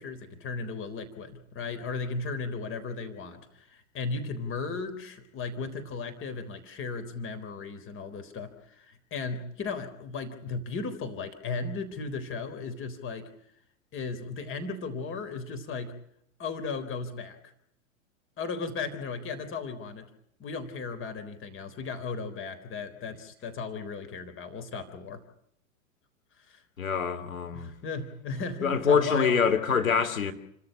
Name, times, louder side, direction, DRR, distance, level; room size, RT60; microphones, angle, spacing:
voice 1, 0.0-13.3 13.9-15.9 16.4-17.5 18.4-20.1 20.4-25.2 26.4-26.6 27.5-29.4, left 4 dB, 30° left, 3.8 m, -36 dB
voice 2, 26.8-27.7 28.6-30.3, left 6 dB, 85° left, 3.3 m, -25 dB
30.0 x 14.0 x 8.9 m
hypercardioid pair, 100°, 40 cm